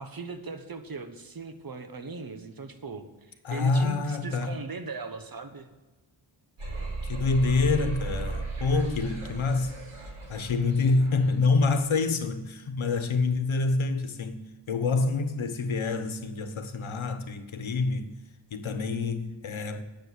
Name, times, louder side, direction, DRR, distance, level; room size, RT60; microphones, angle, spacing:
voice 1, 0.0-5.7, right 4 dB, 45° right, 1.3 m, -39 dB
voice 2, 3.4-4.6 7.0-9.7 10.3-18.1 18.5-19.8, left 3 dB, 75° left, 1.2 m, -27 dB
sound 1, 6.6-11.7, right 3 dB, 90° right, 4.6 m, -36 dB
9.9 x 7.0 x 8.2 m
cardioid pair, 60°, 48 cm